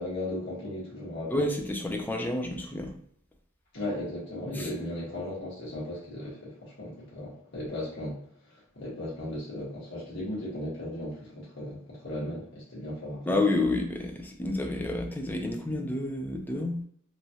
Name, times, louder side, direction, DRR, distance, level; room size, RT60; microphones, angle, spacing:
voice 1, 0.0-1.4 3.7-8.2 8.8-13.3, left 1 dB, 60° left, -7 dB, 1.2 m, -36 dB
voice 2, 1.3-2.9 4.5-4.7 13.3-16.8, left 2 dB, 10° left, 3 dB, 0.4 m, -29 dB
3.0 x 2.3 x 2.7 m, 0.64 s
head